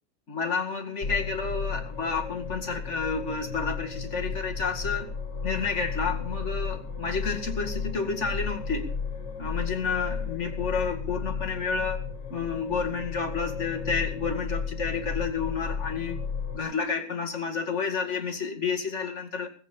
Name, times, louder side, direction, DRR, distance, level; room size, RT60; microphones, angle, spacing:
voice 1, 0.3-5.1 5.4-8.9 9.4-16.2 16.5-19.5, left 5 dB, 40° left, 4 dB, 2.5 m, -30 dB
sound 1, 1.0-16.6, left 5 dB, 75° left, 2.6 m, -34 dB
19.5 x 8.4 x 7.0 m, 0.42 s
omnidirectional pair, 1.8 m